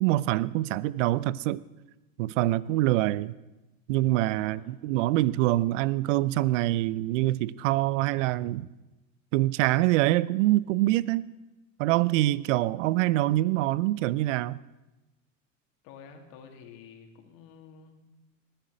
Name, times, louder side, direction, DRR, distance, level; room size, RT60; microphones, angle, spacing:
voice 1, 0.0-1.6 2.2-3.3 3.9-8.7 9.3-11.2 11.8-14.6, right 16 dB, 65° right, 20 dB, 0.7 m, -25 dB
voice 2, 4.4-4.9 15.8-18.0, left 6 dB, 60° left, 4 dB, 3.0 m, -50 dB
19.5 x 10.5 x 6.4 m, 1.0 s
hypercardioid pair, 90°, 39 cm